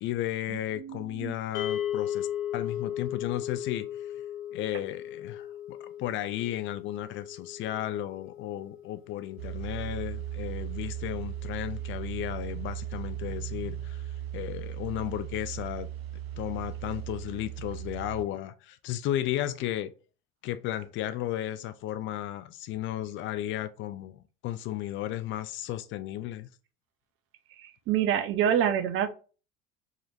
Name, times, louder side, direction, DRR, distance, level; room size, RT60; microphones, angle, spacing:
voice 1, 0.0-2.3 2.5-4.1 4.5-15.9 16.4-19.9 20.4-26.5, left 13 dB, 40° left, 0.4 m, -34 dB
voice 2, 0.8-1.3 27.6-29.1, right 9 dB, 45° right, 0.6 m, -27 dB
sound 1, 1.5-11.8, left 10 dB, 55° left, 0.8 m, -38 dB
sound 2, 9.4-18.3, right 12 dB, 90° right, 0.5 m, -37 dB
4.8 x 2.9 x 2.5 m
figure-of-eight pair, 65°, 30 cm